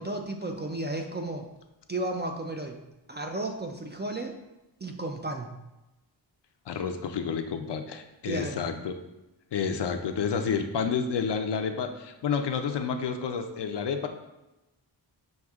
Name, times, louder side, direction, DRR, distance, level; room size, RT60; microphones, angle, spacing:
voice 1, 0.0-1.5 1.9-2.8 3.1-4.3 4.8-5.5 8.3-8.6, right 2 dB, 25° right, 3 dB, 0.3 m, -33 dB
voice 2, 6.7-9.0 9.5-14.1, left 6 dB, 65° left, 7 dB, 0.5 m, -30 dB
6.3 x 2.6 x 2.3 m, 0.97 s
wide cardioid pair, 75°, 46 cm